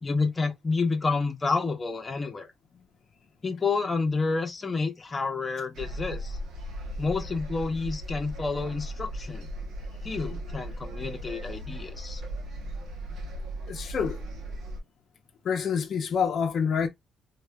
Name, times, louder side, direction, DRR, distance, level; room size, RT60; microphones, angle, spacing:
voice 1, 0.0-2.5 3.4-6.4 7.0-9.5 10.0-12.2, left 4 dB, 30° left, 0.9 m, -29 dB
sound 1, 5.7-14.8, equal, 80° right, 0.8 m, -37 dB
voice 2, 13.7-14.2 15.4-16.9, left 6 dB, 60° left, 0.6 m, -27 dB
3.2 x 2.4 x 2.2 m
cardioid pair, 90°, 0 cm